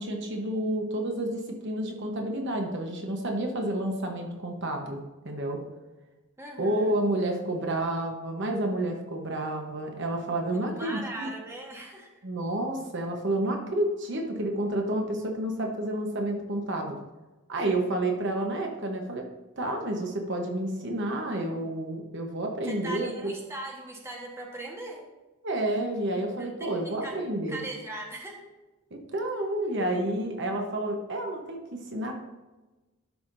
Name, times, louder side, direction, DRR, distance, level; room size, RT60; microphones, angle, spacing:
voice 1, 0.0-5.0 5.2-5.6 6.6-11.3 12.2-17.0 17.5-19.2 19.6-23.3 25.4-27.6 28.9-32.1, right 1 dB, 55° right, 3 dB, 1.0 m, -30 dB
voice 2, 6.4-6.9 10.5-12.2 22.6-25.0 26.4-27.1 27.5-28.4, right 1 dB, 10° right, -1 dB, 1.2 m, -40 dB
12.0 x 5.7 x 2.6 m, 1.1 s
head